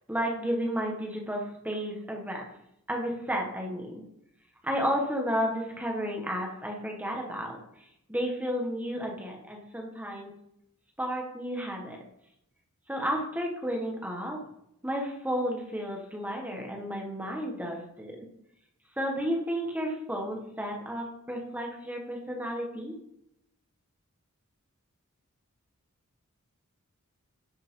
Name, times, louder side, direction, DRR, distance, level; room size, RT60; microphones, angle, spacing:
voice 1, 0.1-2.5 2.9-4.0 4.6-7.6 8.1-10.3 11.0-12.0 12.9-14.4 14.8-18.3 19.0-23.0, equal, 5° right, 0 dB, 1.3 m, -32 dB
10.5 x 5.4 x 3.7 m, 0.79 s
head